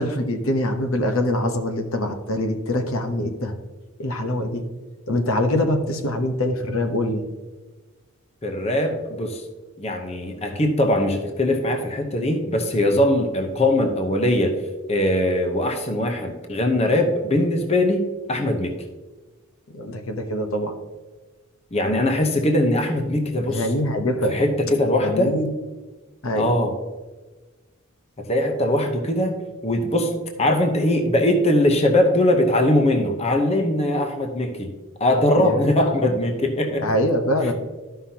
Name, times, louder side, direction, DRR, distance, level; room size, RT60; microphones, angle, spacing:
voice 1, 0.0-3.5 4.0-4.7 5.1-7.2 19.7-20.8 23.5-24.4 25.0-25.5 26.2-26.5 35.4-35.7 36.8-37.5, left 1 dB, 65° left, 5 dB, 0.9 m, -24 dB
voice 2, 8.4-9.4 9.8-14.6 14.9-18.7 21.7-23.7 24.3-25.3 26.3-26.7 28.2-29.4 29.6-34.7 35.0-36.8 37.4-37.5, left 1 dB, 30° left, 4 dB, 0.8 m, -21 dB
13.0 x 5.7 x 2.8 m, 1.2 s
head